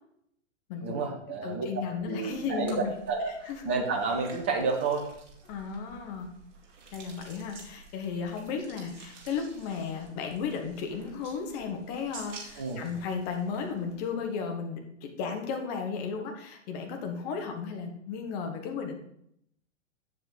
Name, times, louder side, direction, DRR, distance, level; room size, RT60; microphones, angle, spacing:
voice 1, 0.8-1.7 2.1-5.1 12.6-12.9, right 4 dB, 10° right, 3 dB, 0.3 m, -30 dB
voice 2, 1.4-2.9 3.3-3.6 5.5-6.3 6.9-18.9, left 5 dB, 30° left, 3 dB, 1.5 m, -34 dB
sound 1, 2.3-14.5, right 3 dB, 40° right, 2.1 m, -51 dB
7.8 x 7.4 x 4.0 m, 0.72 s
figure-of-eight pair, 115°, 37 cm